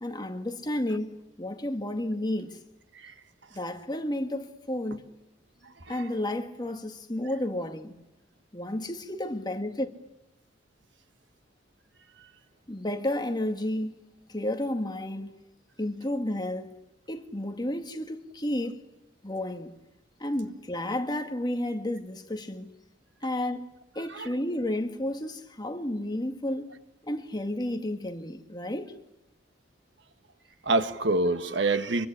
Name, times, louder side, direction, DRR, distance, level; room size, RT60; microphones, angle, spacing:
voice 1, 0.0-2.6 3.5-5.0 5.9-7.9 8.5-9.9 12.7-15.4 15.8-16.8 17.1-18.8 19.2-19.7 20.2-22.7 23.2-23.7 24.0-26.7 27.0-29.0, left 1 dB, 25° left, 2.0 m, -32 dB
voice 2, 5.6-6.0 24.1-24.3 30.6-32.1, right 2 dB, 70° right, 1.7 m, -27 dB
25.5 x 23.0 x 10.0 m
head